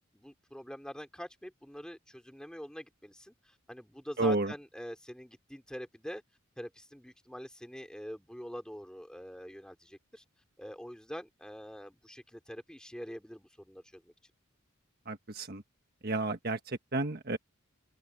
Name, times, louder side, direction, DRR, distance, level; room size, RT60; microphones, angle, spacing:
voice 1, 0.1-6.2 6.6-10.2 10.6-14.1, equal, 5° left, 3.8 m, -45 dB
voice 2, 4.2-4.5 15.1-15.6 16.0-17.4, right 2 dB, 45° right, 1.4 m, -31 dB
head